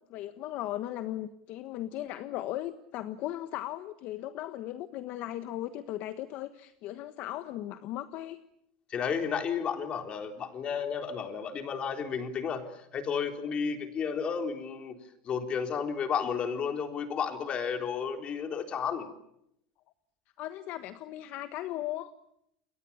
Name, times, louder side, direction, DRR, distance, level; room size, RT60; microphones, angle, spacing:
voice 1, 0.1-8.4 20.4-22.1, left 14 dB, 50° left, 11 dB, 1.3 m, -37 dB
voice 2, 8.9-15.0 15.2-19.1, left 6 dB, 30° left, 5 dB, 3.8 m, -32 dB
29.5 x 22.5 x 7.2 m, 0.77 s
supercardioid pair, 145°, 4 cm